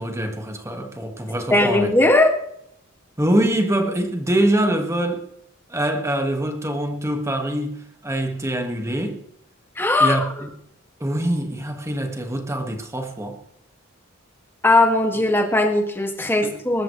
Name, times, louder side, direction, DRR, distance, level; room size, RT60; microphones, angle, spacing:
voice 1, 0.0-1.9 3.2-5.3 5.7-9.2 10.0-10.5 11.0-13.4 16.4-16.6, right 1 dB, 15° right, 1.9 m, -24 dB
voice 2, 1.5-2.3 9.8-10.3 14.6-16.8, left 2 dB, 10° left, 2.2 m, -18 dB
20.5 x 13.5 x 3.3 m
head